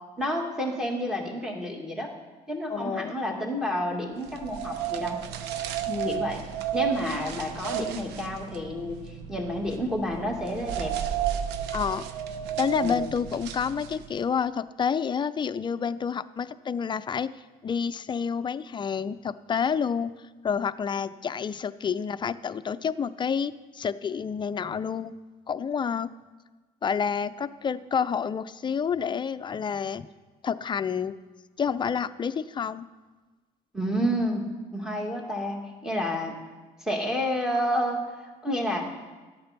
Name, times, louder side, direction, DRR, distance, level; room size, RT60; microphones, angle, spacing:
voice 1, 0.2-2.1 2.5-5.2 6.0-6.4 6.7-10.9 12.8-13.0 33.7-36.3 36.8-39.1, equal, 5° right, 1 dB, 2.3 m, -30 dB
voice 2, 2.7-3.1 5.9-6.3 11.7-12.0 12.6-17.3 17.6-20.1 20.4-25.2 25.5-26.1 26.8-30.1 30.4-31.1 31.6-32.9, left 6 dB, 30° left, 11 dB, 0.5 m, -29 dB
sound 1, 4.2-14.2, right 10 dB, 90° right, 0.8 m, -33 dB
13.0 x 8.6 x 6.0 m, 1.3 s
cardioid pair, 110°, 17 cm